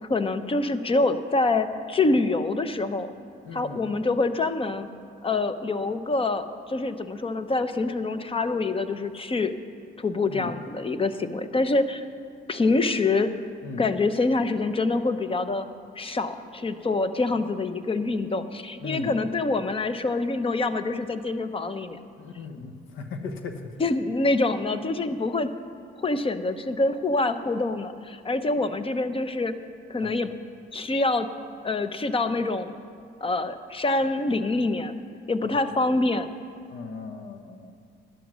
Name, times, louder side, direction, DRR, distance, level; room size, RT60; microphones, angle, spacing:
voice 1, 0.1-3.1 3.5-4.9 5.2-9.5 10.0-12.0 12.5-13.3 13.8-15.7 16.0-22.0 23.8-25.5 26.0-29.5 29.9-30.3 30.7-31.3 31.6-32.7 33.2-34.9 35.3-36.3, left 3 dB, 25° left, 10 dB, 0.7 m, -25 dB
voice 2, 3.4-3.9 10.3-10.5 13.6-13.9 18.8-19.2 22.1-23.7 30.0-30.2 35.4-35.7 36.7-37.7, left 4 dB, 85° left, 7 dB, 1.0 m, -37 dB
12.0 x 9.4 x 6.2 m, 2.4 s
cardioid pair, 90°, 20 cm